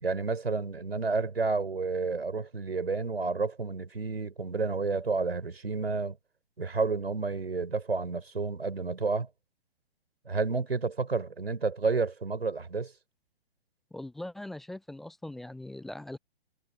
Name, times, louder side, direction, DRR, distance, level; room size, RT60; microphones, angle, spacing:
voice 1, 0.0-6.2 6.6-9.3 10.3-12.9, right 4 dB, 75° right, 4.3 m, -30 dB
voice 2, 13.9-16.2, left 1 dB, ahead, 0.3 m, -41 dB
figure-of-eight pair, 125°, 31 cm